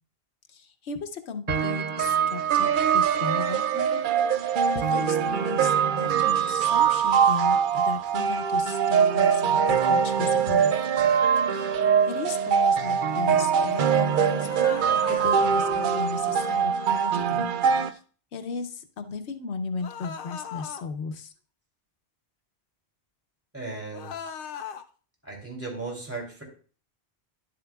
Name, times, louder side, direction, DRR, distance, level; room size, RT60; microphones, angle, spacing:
voice 1, 0.5-4.0 4.4-10.7 11.5-11.8 12.1-17.5 17.9-18.0 18.3-21.3, left 4 dB, 90° left, 8 dB, 1.1 m, -36 dB
sound 1, 1.5-17.9, right 7 dB, 60° right, 0.6 m, -23 dB
sound 2, 14.3-15.3 19.8-20.8 23.9-24.8, left 7 dB, 60° left, 0.8 m, -38 dB
voice 2, 23.5-24.1 25.2-26.4, right 3 dB, 15° right, -2 dB, 3.0 m, -36 dB
11.0 x 7.7 x 2.3 m, 0.40 s
omnidirectional pair, 1.1 m